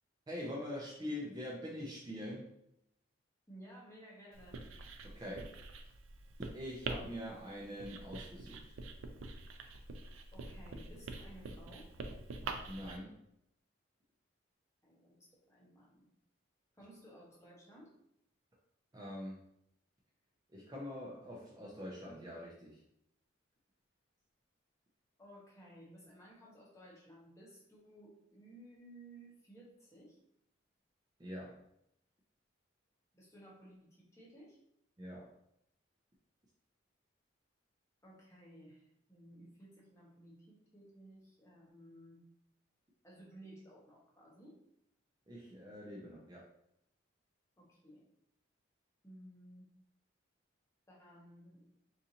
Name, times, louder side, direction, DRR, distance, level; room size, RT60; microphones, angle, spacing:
voice 1, 0.3-2.5 5.0-5.6 6.4-8.7 12.7-13.2 18.9-19.4 20.5-22.8 31.2-31.6 35.0-35.3 45.3-46.5, equal, 20° right, -3 dB, 0.4 m, -44 dB
voice 2, 3.5-4.7 10.3-11.9 14.8-16.1 16.8-17.9 25.2-30.2 33.1-34.6 38.0-42.3 43.0-44.6 47.6-48.1 49.0-49.7 50.9-51.8, right 1 dB, 15° left, -4 dB, 0.8 m, -57 dB
Writing, 4.3-13.0, right 3 dB, 80° right, 0.4 m, -46 dB
3.8 x 2.5 x 2.8 m, 0.76 s
head